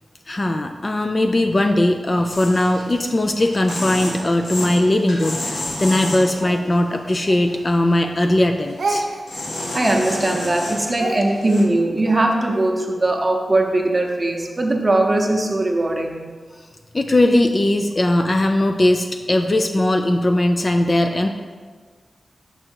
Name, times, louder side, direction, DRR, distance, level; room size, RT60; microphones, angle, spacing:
voice 1, 0.3-9.1 16.5-16.6 16.9-21.3, left 1 dB, 30° left, 5 dB, 0.3 m, -19 dB
Speech, 1.5-4.7 5.2-8.0 8.3-12.7, right 2 dB, 65° right, 0.7 m, -33 dB
sound 1, 2.3-6.7 7.1-7.7 8.7-9.0 9.3-11.6, left 1 dB, 75° left, 1.2 m, -31 dB
voice 2, 9.7-16.2, right 2 dB, 25° right, 1 dB, 0.8 m, -20 dB
6.5 x 4.9 x 4.5 m, 1.5 s
wide cardioid pair, 150°, 0 cm